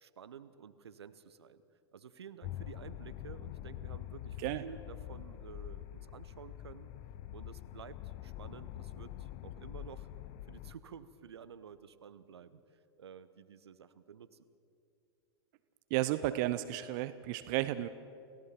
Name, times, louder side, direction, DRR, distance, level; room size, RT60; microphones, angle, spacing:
voice 1, 0.0-1.6 1.9-6.9 7.3-10.1 10.5-12.6 13.0-14.5, right 7 dB, 75° right, 13 dB, 1.1 m, -52 dB
sound 1, 2.4-10.7, left 13 dB, 40° left, 0.8 m, -45 dB
voice 2, 15.9-17.9, right 15 dB, 45° right, 13 dB, 0.7 m, -33 dB
29.0 x 16.5 x 5.9 m, 2.6 s
figure-of-eight pair, 100°, 14 cm